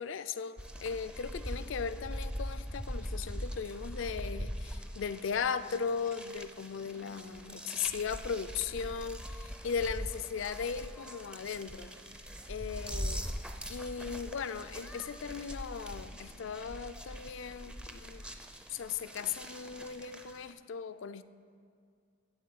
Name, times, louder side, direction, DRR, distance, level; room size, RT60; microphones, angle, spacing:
voice 1, 0.0-12.0 12.5-13.3 13.7-18.2 18.7-21.2, left 6 dB, 65° left, 13 dB, 0.4 m, -37 dB
sound 1, 0.6-20.5, equal, 5° right, 0.4 m, -42 dB
8.2 x 8.0 x 7.7 m, 2.3 s
head